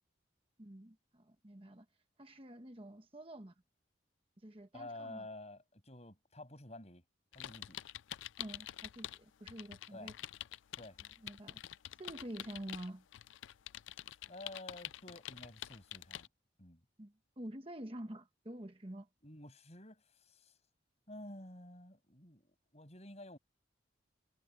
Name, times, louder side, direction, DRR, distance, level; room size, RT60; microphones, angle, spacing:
voice 1, 0.6-1.8 2.2-3.5 4.4-5.3 8.4-10.1 11.2-11.6 12.0-13.0 17.0-19.1, right 1 dB, 30° right, 1.2 m, -48 dB
voice 2, 4.7-7.0 7.3-7.8 9.9-10.1 10.8-11.0 14.3-16.3 16.6-16.8 19.2-20.5 21.1-23.4, left 1 dB, 35° left, 6.8 m, -51 dB
sound 1, 7.3-9.2 9.5-16.3, left 13 dB, 80° left, 0.4 m, -47 dB
head